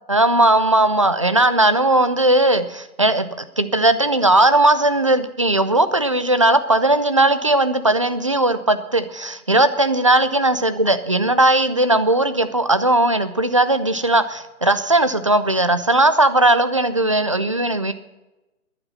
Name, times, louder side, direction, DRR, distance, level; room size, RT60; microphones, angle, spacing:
voice 1, 0.1-3.3 3.6-17.9, right 2 dB, 25° right, 12 dB, 0.4 m, -17 dB
11.0 x 9.7 x 9.6 m, 1.0 s
hypercardioid pair, 150°, 44 cm